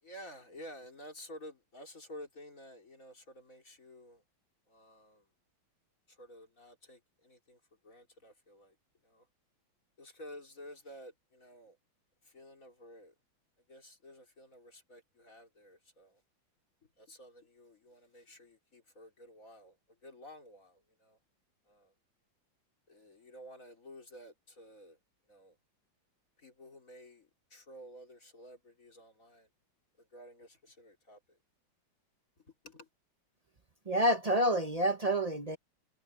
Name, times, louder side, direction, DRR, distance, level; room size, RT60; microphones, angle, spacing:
voice 1, 0.0-4.2 4.7-5.3 6.1-8.8 9.0-9.3 10.0-11.8 12.2-13.1 13.7-16.2 17.0-19.8 20.0-21.2 21.7-21.9 22.9-25.0 25.3-25.6 26.4-29.5 30.0-31.4 32.4-32.9, equal, 40° left, 3.7 m, -52 dB
voice 2, 33.9-35.6, equal, 55° right, 0.4 m, -28 dB
omnidirectional pair, 2.2 m